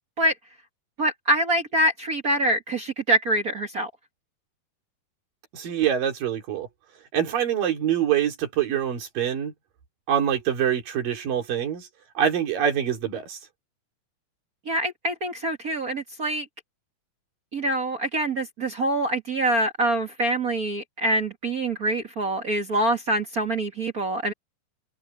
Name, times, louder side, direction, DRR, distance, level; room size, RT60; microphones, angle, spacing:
voice 1, 1.0-3.9 14.6-16.5 17.5-24.3, right 1 dB, 45° right, 1.2 m, -25 dB
voice 2, 5.5-6.7 7.1-9.5 10.1-11.9 12.2-13.4, right 9 dB, 85° right, 4.9 m, -25 dB
omnidirectional pair, 3.8 m